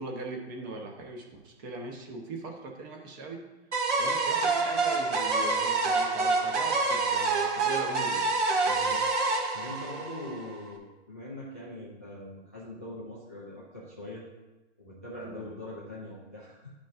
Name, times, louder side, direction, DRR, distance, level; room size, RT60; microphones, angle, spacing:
voice 1, 0.0-3.4 4.0-8.3 15.2-15.5, right 3 dB, 20° right, 2 dB, 0.7 m, -40 dB
sound 1, 3.7-10.7, right 3 dB, 70° right, 2.1 m, -27 dB
voice 2, 8.6-9.1 9.5-14.2 14.8-16.7, left 1 dB, 15° left, -7 dB, 0.3 m, -42 dB
11.5 x 5.2 x 2.4 m, 1.1 s
hypercardioid pair, 160°, 36 cm